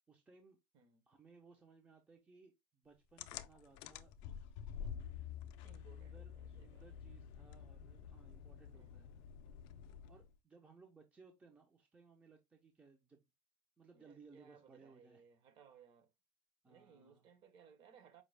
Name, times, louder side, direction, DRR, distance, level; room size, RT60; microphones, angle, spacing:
voice 1, 0.1-0.6 1.1-4.1 5.7-9.1 10.1-13.3 13.8-15.2 16.6-17.2, right 4 dB, 10° right, 0.5 m, -63 dB
sound 1, 3.2-10.4, left 8 dB, 50° left, 0.4 m, -49 dB
voice 2, 5.6-6.9 8.7-9.3 13.9-16.1 16.6-18.2, right 7 dB, 40° right, 0.8 m, -64 dB
5.1 x 2.2 x 3.2 m
cardioid pair, 165°, 12 cm